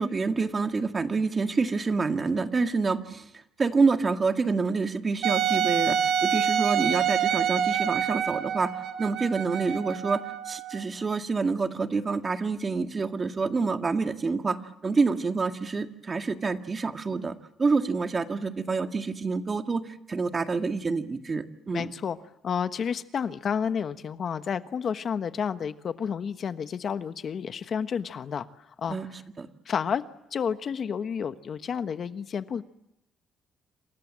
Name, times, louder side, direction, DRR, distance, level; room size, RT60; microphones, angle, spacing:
voice 1, 0.0-8.7 9.0-14.6 14.8-21.9 28.9-29.1 29.4-29.5, right 4 dB, 35° right, 7 dB, 1.9 m, -27 dB
Wind instrument woodwind instrument, 5.2-10.9, right 9 dB, 80° right, 2.0 m, -27 dB
voice 2, 21.7-22.2 22.4-29.0 29.6-30.0 30.3-32.6, left 7 dB, 55° left, 11 dB, 1.3 m, -30 dB
28.0 x 26.5 x 7.6 m, 0.85 s
cardioid pair, 90°, 0 cm